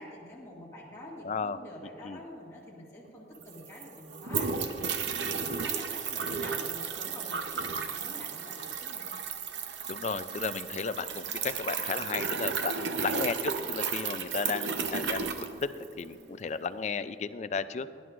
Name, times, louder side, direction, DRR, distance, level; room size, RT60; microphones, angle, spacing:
voice 1, 0.0-9.1 17.6-18.0, left 1 dB, 15° left, -6 dB, 2.0 m, -47 dB
voice 2, 1.2-1.6 2.0-2.2 9.9-15.7 16.0-17.9, left 5 dB, 40° left, 13 dB, 0.4 m, -34 dB
sound 1, 3.1-3.2 3.4-16.1, right 6 dB, 80° right, 0.8 m, -34 dB
17.0 x 11.0 x 2.5 m, 2.9 s
head